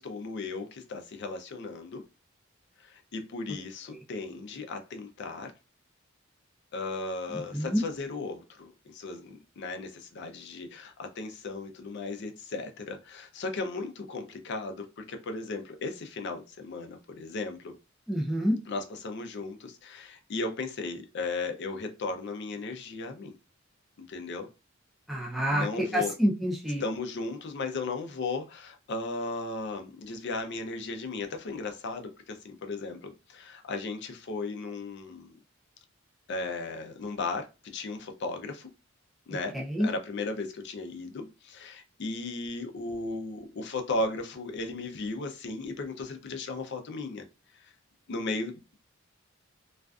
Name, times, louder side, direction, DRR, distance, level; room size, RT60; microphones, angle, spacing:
voice 1, 0.0-2.0 2.8-5.5 6.7-17.7 18.7-23.4 24.0-24.5 25.5-26.1 26.8-35.4 36.3-38.7 39.3-47.3 47.5-47.7 48.1-48.8, left 3 dB, 55° left, 0.4 m, -36 dB
voice 2, 18.1-18.6 25.1-25.7 25.9-26.8 39.5-39.9, equal, ahead, 0.5 m, -27 dB
2.4 x 2.2 x 2.3 m
head